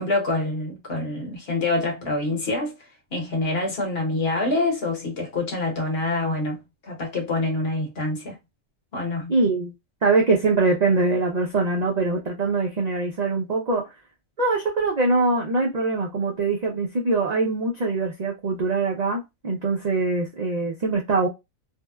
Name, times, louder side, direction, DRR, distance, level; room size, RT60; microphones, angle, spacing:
voice 1, 0.0-2.7 3.1-8.4 8.9-9.3, left 2 dB, 55° left, 1.1 m, -26 dB
voice 2, 9.3-9.7 10.0-13.9 14.4-21.3, right 3 dB, 60° right, 0.4 m, -23 dB
2.6 x 2.0 x 2.3 m
omnidirectional pair, 1.4 m